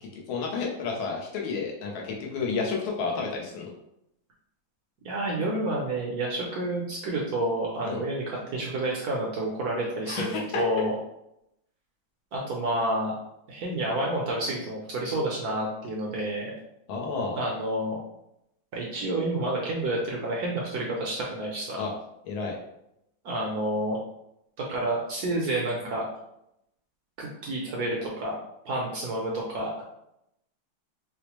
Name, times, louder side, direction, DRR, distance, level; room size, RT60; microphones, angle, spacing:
voice 1, 0.0-3.7 7.8-8.0 10.1-10.8 16.9-17.4 21.8-21.9 22.3-22.6, left 4 dB, 85° left, -1 dB, 1.6 m, -31 dB
voice 2, 5.0-11.0 12.3-13.1 13.5-16.5 17.3-18.0 18.7-21.8 23.2-24.0 24.6-26.1 27.2-28.4 28.7-29.8, right 1 dB, 70° right, -2 dB, 0.9 m, -29 dB
4.7 x 2.1 x 2.9 m, 0.80 s
omnidirectional pair, 2.2 m